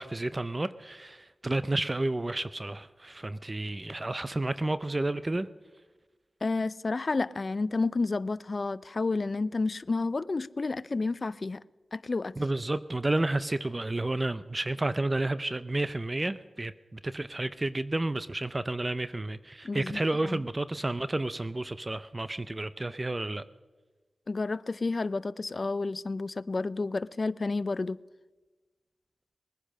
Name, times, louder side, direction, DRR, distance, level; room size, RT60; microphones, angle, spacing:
voice 1, 0.0-5.5 12.4-23.4, right 2 dB, 30° right, 0.5 m, -31 dB
voice 2, 6.4-11.6 11.9-12.3 19.6-20.4 24.3-28.0, left 3 dB, 50° left, 0.4 m, -30 dB
20.0 x 9.9 x 6.4 m
cardioid pair, 45°, 0 cm